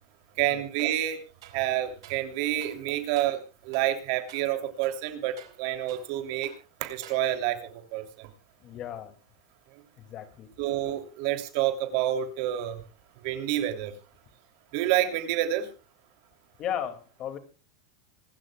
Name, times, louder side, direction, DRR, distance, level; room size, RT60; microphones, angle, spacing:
voice 1, 0.4-1.2 1.5-6.5 6.8-8.3 10.6-12.8 13.2-13.9 14.7-15.7, right 12 dB, 55° right, 6 dB, 3.0 m, -28 dB
sound 1, 0.8-1.0 1.4-2.3 2.6-2.8 3.2-3.4 3.7-4.0 4.3-4.5 4.8-6.2 6.4-6.7 7.0-7.6, right 11 dB, 80° right, 4.5 m, -51 dB
voice 2, 8.6-9.1 10.0-10.5 16.6-17.4, left 10 dB, 35° left, 9 dB, 2.3 m, -35 dB
25.5 x 12.5 x 2.3 m, 0.35 s
supercardioid pair, 150°, 2 cm